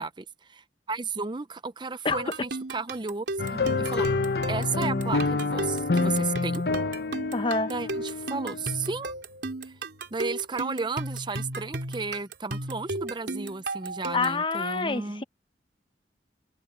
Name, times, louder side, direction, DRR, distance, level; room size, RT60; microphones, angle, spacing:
voice 1, 0.0-3.3 3.5-4.1 4.5-6.6 7.7-9.1 9.6-9.8 10.1-15.2, right 4 dB, 25° right, 0.6 m, -33 dB
sound 1, 2.1-14.4, right 2 dB, 80° right, 3.2 m, -35 dB
sound 2, 3.4-9.0, left 3 dB, 60° left, 0.9 m, -28 dB
Chink clink, 3.8-8.2 8.6-9.2, left 3 dB, 80° left, 5.3 m, -49 dB
voice 2, 7.3-7.7 14.1-15.2, left 3 dB, 30° left, 0.9 m, -27 dB
head